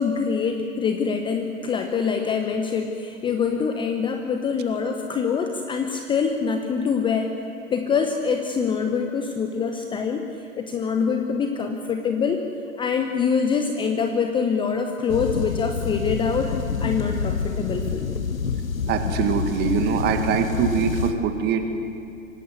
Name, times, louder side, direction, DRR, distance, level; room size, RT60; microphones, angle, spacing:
voice 1, 0.0-7.3 7.7-10.2 10.5-12.5 12.8-16.5 16.8-18.2, left 6 dB, 10° left, 5 dB, 0.9 m, -25 dB
sound 1, 15.1-21.1, left 5 dB, 75° left, 1.4 m, -27 dB
voice 2, 18.9-21.7, right 7 dB, 25° right, 6 dB, 2.0 m, -23 dB
25.0 x 18.5 x 8.0 m, 2.5 s
figure-of-eight pair, 115°, 40 cm